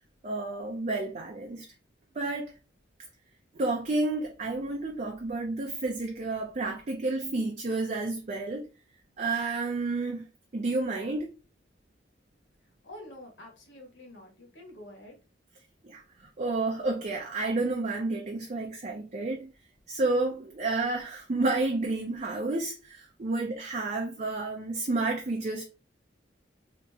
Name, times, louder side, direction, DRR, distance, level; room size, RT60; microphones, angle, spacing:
voice 1, 0.2-1.7 2.2-2.5 3.5-8.7 9.2-10.2 10.5-11.3 15.8-16.0 16.4-19.5 19.9-25.7, right 2 dB, 40° right, 0.5 m, -30 dB
voice 2, 12.8-15.1, left 1 dB, 85° left, 1.4 m, -47 dB
2.9 x 2.8 x 3.4 m
head